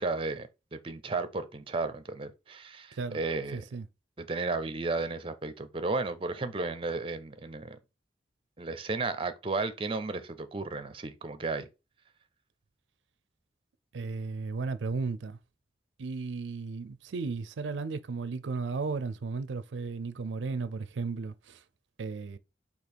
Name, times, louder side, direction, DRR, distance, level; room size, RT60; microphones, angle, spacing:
voice 1, 0.0-3.6 4.2-7.8 8.6-11.7, right 3 dB, 30° right, 0.5 m, -33 dB
voice 2, 3.5-3.9 13.9-15.4 16.0-21.6 22.0-22.4, right 4 dB, 85° right, 0.4 m, -35 dB
4.5 x 2.8 x 4.1 m
head